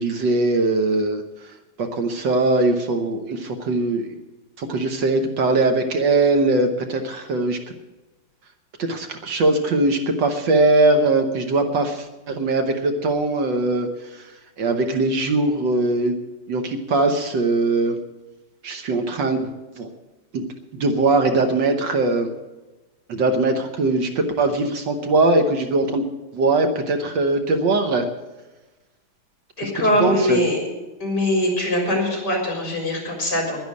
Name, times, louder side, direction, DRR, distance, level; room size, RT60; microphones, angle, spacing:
voice 1, 0.0-1.5 1.8-4.1 4.6-7.6 8.8-13.9 14.1-14.3 14.6-16.2 16.5-18.0 18.6-19.5 19.8-19.9 20.3-20.4 20.7-22.3 23.1-26.0 26.3-28.0 29.6-29.7 30.0-30.4, right 2 dB, 60° right, 6 dB, 1.6 m, -21 dB
voice 2, 29.6-30.6 31.0-33.6, left 1 dB, 50° left, 0 dB, 4.7 m, -22 dB
11.0 x 10.5 x 8.3 m, 1.1 s
omnidirectional pair, 2.3 m